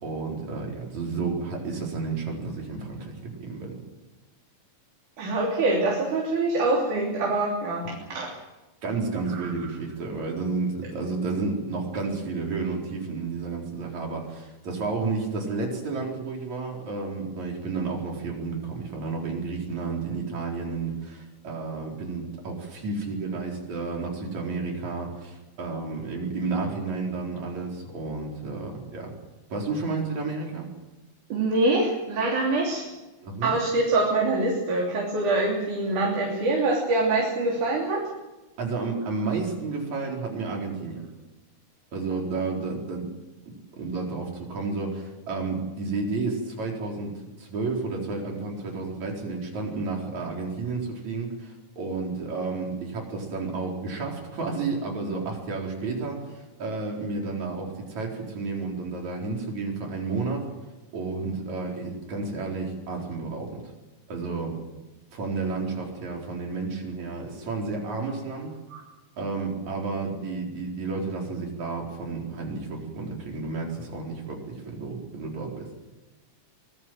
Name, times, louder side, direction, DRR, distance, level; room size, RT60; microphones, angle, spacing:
voice 1, 0.0-3.7 8.8-29.1 29.5-30.7 33.2-33.5 38.6-41.0 41.9-43.1 43.8-60.5 60.9-63.7 64.1-64.6 65.1-68.5 69.2-75.7, right 4 dB, 70° right, -1 dB, 5.7 m, -31 dB
voice 2, 5.2-7.8 8.1-8.3 31.3-32.9 33.4-38.0 68.7-68.8, right 2 dB, 90° right, -2 dB, 4.8 m, -24 dB
24.0 x 19.5 x 7.8 m, 1.1 s
omnidirectional pair, 3.4 m